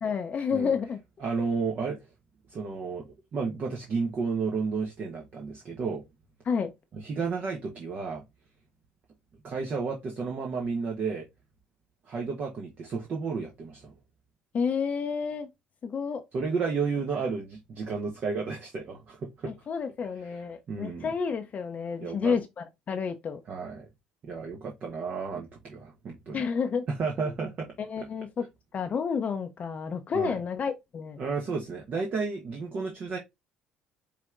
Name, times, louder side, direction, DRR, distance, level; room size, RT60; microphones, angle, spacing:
voice 1, 0.0-1.0 6.5-6.7 14.5-15.5 15.8-16.2 19.7-23.4 26.3-26.8 27.8-28.5 28.7-31.2, left 6 dB, 40° left, 0.6 m, -30 dB
voice 2, 1.2-2.0 2.5-6.0 6.9-8.2 9.4-11.2 12.1-13.9 16.3-19.5 20.2-21.1 22.0-22.4 23.5-23.9 24.2-26.4 26.9-27.7 30.1-30.4 31.2-33.2, right 5 dB, 45° right, 1.0 m, -32 dB
5.2 x 3.3 x 2.5 m
figure-of-eight pair, 55°, 4 cm